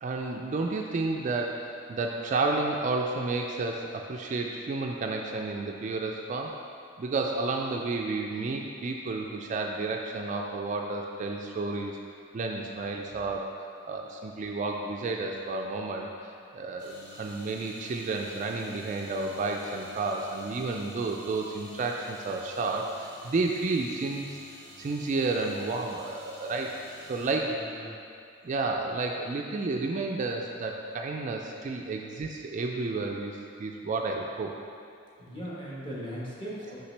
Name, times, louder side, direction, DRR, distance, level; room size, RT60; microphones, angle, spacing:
voice 1, 0.0-6.5 7.0-11.9 12.3-24.4 24.8-26.7 27.1-27.6 28.4-34.5, right 3 dB, 35° right, 1 dB, 0.3 m, -31 dB
sound 1, 16.8-27.3, equal, 55° left, 1.1 m, -50 dB
voice 2, 27.3-27.9 35.2-36.8, equal, 25° left, -7 dB, 1.2 m, -39 dB
5.9 x 5.6 x 3.3 m, 2.4 s
head